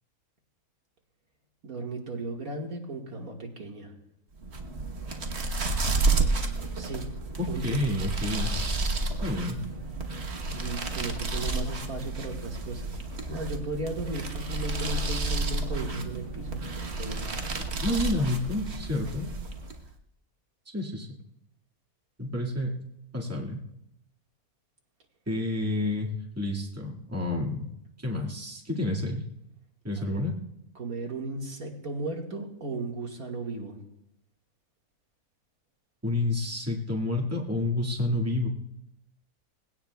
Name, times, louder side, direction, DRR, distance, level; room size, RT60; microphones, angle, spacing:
voice 1, 1.6-3.9 6.7-7.8 10.5-17.3 30.0-30.2 30.8-33.8, right 2 dB, 70° right, 0 dB, 2.3 m, -36 dB
sound 1, 4.4-19.9, right 3 dB, 50° right, 1.5 m, -31 dB
voice 2, 7.4-8.5 9.2-9.6 17.8-19.3 20.7-21.1 22.2-22.8 23.1-23.6 25.3-26.1 26.4-27.7 28.0-29.2 29.8-30.3 36.0-38.5, left 2 dB, 10° right, -1 dB, 1.9 m, -29 dB
22.0 x 17.0 x 2.3 m, 0.83 s
omnidirectional pair, 1.6 m